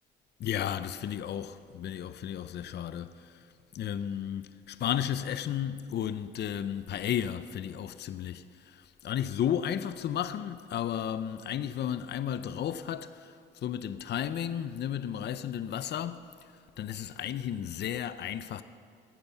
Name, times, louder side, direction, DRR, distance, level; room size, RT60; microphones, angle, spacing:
voice 1, 0.4-3.4 3.7-13.3 13.6-16.3 16.8-18.6, left 10 dB, 60° left, 0.6 m, -33 dB
15.0 x 9.5 x 7.0 m
cardioid pair, 90°, 20 cm